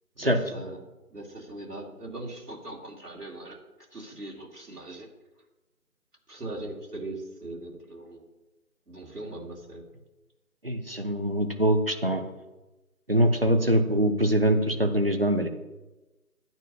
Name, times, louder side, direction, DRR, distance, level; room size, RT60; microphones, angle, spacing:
voice 1, 0.2-0.9 1.1-3.6 3.9-5.1 6.3-8.2 8.9-9.8, right 2 dB, 85° right, -2 dB, 2.5 m, -40 dB
voice 2, 10.6-12.2 13.1-15.5, right 1 dB, 40° right, 7 dB, 0.8 m, -23 dB
12.0 x 8.9 x 2.8 m, 1.1 s
figure-of-eight pair, 170°, 46 cm